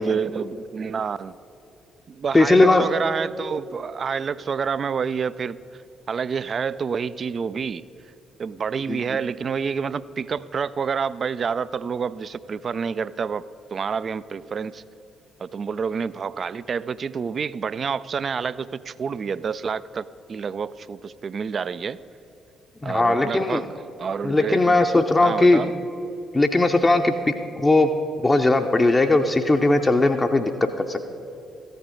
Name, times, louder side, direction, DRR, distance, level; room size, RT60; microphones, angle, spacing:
voice 1, 0.0-1.3 2.1-5.6 6.1-7.8 8.4-14.8 15.4-22.0 22.8-23.7 24.0-24.8 25.2-25.8, right 6 dB, 45° right, 17 dB, 0.3 m, -28 dB
voice 2, 2.3-2.8 8.9-9.0 22.8-23.6 24.2-25.6 26.3-27.9 28.2-31.0, left 2 dB, 20° left, 4 dB, 0.6 m, -19 dB
14.5 x 9.1 x 5.5 m, 2.9 s
figure-of-eight pair, 40°, 0 cm